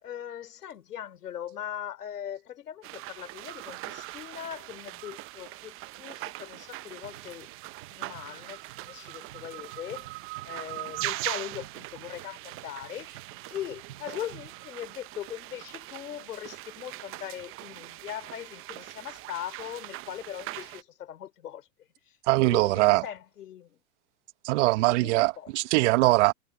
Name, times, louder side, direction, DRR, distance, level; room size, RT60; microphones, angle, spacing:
voice 1, 0.0-7.5 7.9-10.1 10.4-13.2 13.5-21.7 22.1-22.2 22.5-23.8 24.8-25.5, left 10 dB, 80° left, 4.1 m, -40 dB
sound 1, 2.8-20.8, right 19 dB, 30° right, 0.8 m, -41 dB
sound 2, 7.0-14.7, right 11 dB, 75° right, 7.1 m, -52 dB
voice 2, 22.3-23.0 24.4-26.3, right 21 dB, 50° right, 1.1 m, -22 dB
hypercardioid pair, 120°, 46 cm